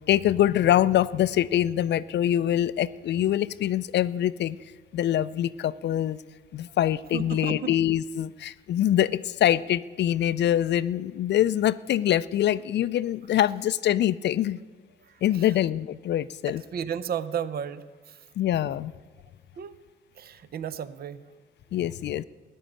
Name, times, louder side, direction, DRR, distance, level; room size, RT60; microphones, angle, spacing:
voice 1, 0.1-4.6 4.9-6.2 6.5-14.6 15.2-16.6 18.4-18.9 21.7-22.2, left 12 dB, 60° left, 16 dB, 0.4 m, -24 dB
voice 2, 7.1-7.7 15.3-15.4 16.5-18.2 19.6-19.7 20.2-21.2, right 8 dB, 50° right, 15 dB, 0.6 m, -33 dB
13.5 x 9.4 x 8.8 m, 1.4 s
cardioid pair, 90°, 20 cm